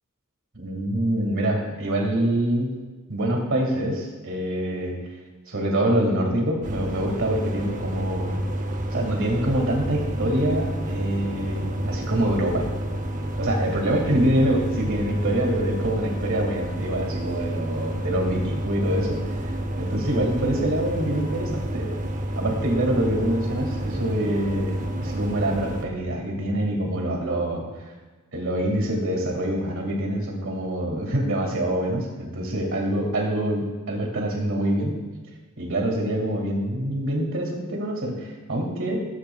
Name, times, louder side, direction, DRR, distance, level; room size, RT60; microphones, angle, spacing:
voice 1, 0.6-2.7 3.1-4.9 5.5-8.4 8.9-12.7 13.4-19.2 19.8-21.9 22.4-27.6 28.3-35.0 35.6-39.0, right 1 dB, 65° right, 1 dB, 2.1 m, -25 dB
sound 1, 6.6-25.9, right 1 dB, 35° right, 0.7 m, -29 dB
14.5 x 7.7 x 2.3 m, 1.3 s
head